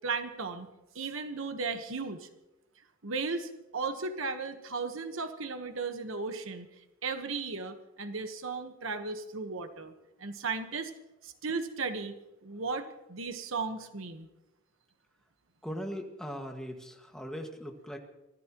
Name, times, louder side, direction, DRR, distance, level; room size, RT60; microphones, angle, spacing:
voice 1, 0.0-0.7 0.9-2.3 3.0-6.7 7.0-9.9 10.2-10.9 11.2-12.2 12.4-14.3, right 4 dB, 80° right, 7 dB, 1.3 m, -35 dB
voice 2, 15.6-18.0, equal, 5° left, 2 dB, 1.8 m, -39 dB
25.0 x 17.5 x 3.0 m, 0.97 s
head